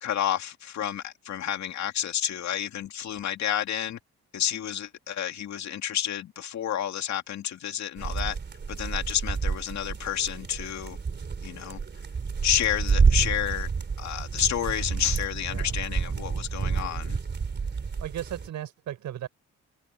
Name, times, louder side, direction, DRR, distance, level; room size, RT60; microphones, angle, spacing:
voice 1, 0.0-4.0 4.3-8.4 8.7-11.0 11.4-11.8 12.4-13.7 14.0-17.2, left 10 dB, 65° left, 2.5 m, -30 dB
sound 1, 8.0-18.5, right 5 dB, 35° right, 3.3 m, -29 dB
voice 2, 18.0-19.3, right 11 dB, 75° right, 4.8 m, -36 dB
cardioid pair, 90°, 30 cm